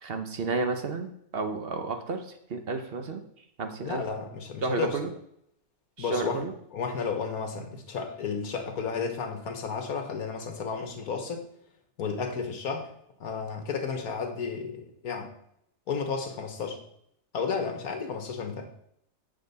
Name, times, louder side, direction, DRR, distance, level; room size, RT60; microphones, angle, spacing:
voice 1, 0.0-3.2 3.6-4.0 4.6-5.1 6.0-6.5, right 3 dB, 50° right, 7 dB, 0.9 m, -31 dB
voice 2, 3.8-5.0 6.0-6.4 6.7-11.4 12.0-12.9 13.2-15.3 15.9-16.8 17.3-18.7, left 5 dB, 85° left, 5 dB, 1.6 m, -32 dB
8.5 x 6.2 x 4.1 m, 0.72 s
omnidirectional pair, 1.5 m